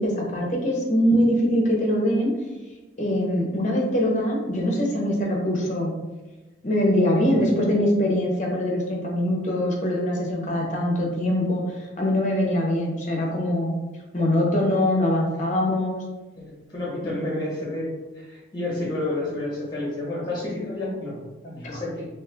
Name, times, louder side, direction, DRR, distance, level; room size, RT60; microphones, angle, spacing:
voice 1, 0.0-2.4 3.0-5.9 6.6-13.7 14.1-16.0 17.0-17.4, left 1 dB, 40° left, -1 dB, 0.7 m, -23 dB
voice 2, 16.4-21.2 21.4-22.0, left 2 dB, 20° left, -5 dB, 1.1 m, -30 dB
2.8 x 2.3 x 3.4 m, 1.1 s
head